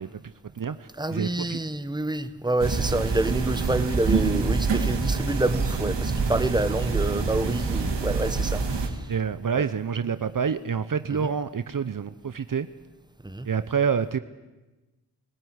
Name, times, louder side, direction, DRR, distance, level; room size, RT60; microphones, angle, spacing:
voice 1, 0.0-1.6 9.1-12.7 13.4-14.2, right 6 dB, 50° right, 12 dB, 0.9 m, -28 dB
voice 2, 1.0-9.1 9.5-9.6 11.1-11.3 13.2-13.5, right 2 dB, 10° right, 12 dB, 1.4 m, -28 dB
sound 1, 2.6-8.9, right 4 dB, 85° right, 2.7 m, -26 dB
21.5 x 15.5 x 9.7 m, 1.1 s
cardioid pair, 50°, 41 cm